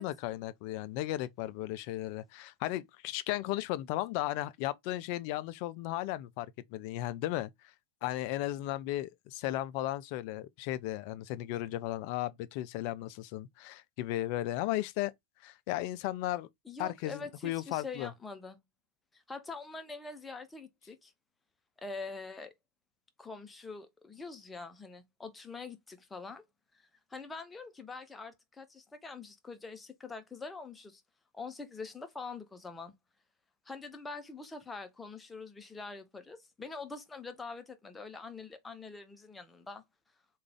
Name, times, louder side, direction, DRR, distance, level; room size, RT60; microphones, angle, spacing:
voice 1, 0.0-7.5 8.0-15.1 15.4-16.5 16.8-18.1, left 15 dB, 45° left, 0.3 m, -35 dB
voice 2, 16.6-18.6 19.1-21.1 21.8-22.5 23.2-26.4 27.1-31.0 31.3-32.9 33.7-39.8, left 4 dB, 10° left, 0.6 m, -44 dB
3.2 x 2.4 x 3.5 m
figure-of-eight pair, 90°, 0 cm